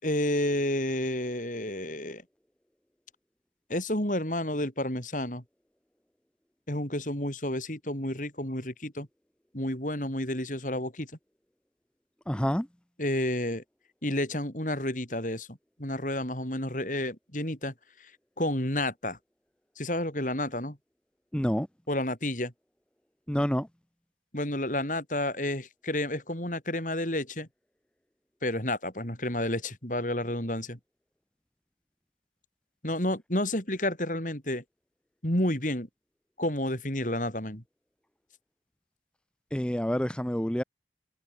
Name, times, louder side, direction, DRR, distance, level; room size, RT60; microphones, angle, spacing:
voice 1, 0.0-2.2 3.7-5.4 6.7-9.1 9.5-11.1 13.0-13.6 14.0-17.7 18.0-18.1 18.4-19.2 19.8-20.8 21.9-22.5 24.3-27.5 28.4-30.8 32.8-34.6 35.2-35.9 36.4-37.6, left 1 dB, 45° left, 5.9 m, -30 dB
voice 2, 12.3-12.7 21.3-21.7 23.3-23.7 39.5-40.6, equal, 5° left, 0.7 m, -28 dB
head